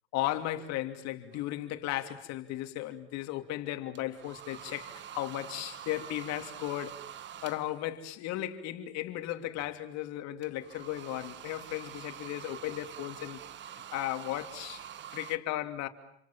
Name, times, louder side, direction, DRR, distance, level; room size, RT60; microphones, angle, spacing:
voice 1, 0.1-7.0 7.4-13.4 13.9-15.9, left 14 dB, 55° left, 3.0 m, -35 dB
sound 1, 1.3-1.6 4.0-8.0 10.4-15.4, right 10 dB, 35° right, 1.5 m, -46 dB
28.5 x 27.0 x 7.5 m
supercardioid pair, 120°, 33 cm